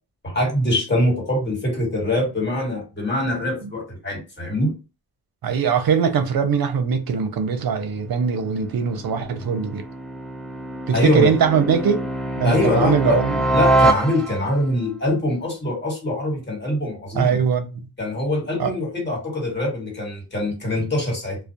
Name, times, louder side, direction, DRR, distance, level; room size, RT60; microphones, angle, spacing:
voice 1, 0.2-4.8 10.9-11.3 12.4-13.2 13.5-17.4 18.0-21.4, left 1 dB, 25° left, 1.5 m, -23 dB
voice 2, 5.4-9.8 10.9-12.1 12.4-13.4 17.1-17.8 18.6-18.7, right 6 dB, 60° right, 0.6 m, -21 dB
sound 1, 8.2-14.7, right 2 dB, ahead, 0.4 m, -25 dB
2.4 x 2.0 x 2.7 m
cardioid pair, 70°, 39 cm